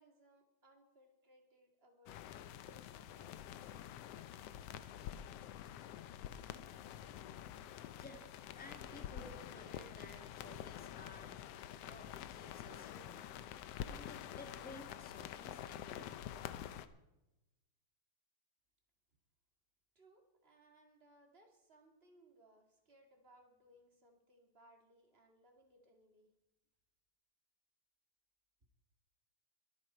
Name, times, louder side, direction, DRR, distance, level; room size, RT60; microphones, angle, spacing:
voice 1, 0.0-2.3 2.5-3.7 20.0-26.3, right 1 dB, 20° right, 3 dB, 1.8 m, -67 dB
sound 1, 2.1-16.9, left 10 dB, 85° left, 1.3 m, -48 dB
voice 2, 8.0-13.2 13.8-16.1, left 1 dB, 5° left, 3 dB, 0.8 m, -56 dB
22.0 x 9.2 x 4.5 m, 0.97 s
omnidirectional pair, 3.7 m